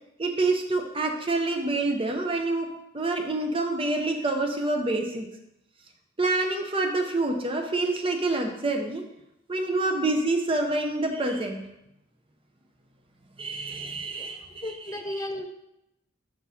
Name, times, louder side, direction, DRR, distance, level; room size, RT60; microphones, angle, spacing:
voice 1, 0.2-2.7 2.9-5.3 6.2-9.0 9.5-11.6 13.4-15.3, right 2 dB, 30° right, 4 dB, 0.7 m, -27 dB
voice 2, 14.6-15.5, left 1 dB, 15° left, 6 dB, 0.4 m, -34 dB
6.1 x 4.6 x 4.1 m, 0.86 s
head